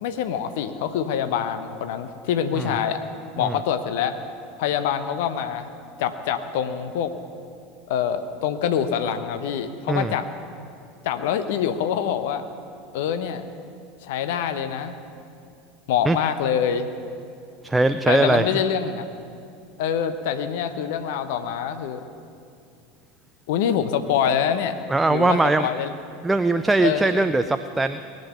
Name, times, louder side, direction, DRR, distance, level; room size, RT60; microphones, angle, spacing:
voice 1, 0.0-3.0 3.4-4.2 4.6-5.7 6.0-7.1 7.9-10.3 11.0-12.4 12.9-13.4 14.0-15.0 15.9-16.9 18.1-19.1 19.8-22.0 23.5-24.8 25.1-25.9 26.8-27.3, left 8 dB, 60° left, 10 dB, 0.9 m, -25 dB
voice 2, 17.6-18.5 24.9-25.7 26.2-28.0, right 2 dB, 10° right, 10 dB, 0.5 m, -21 dB
19.0 x 7.8 x 9.3 m, 2.5 s
figure-of-eight pair, 80°, 0 cm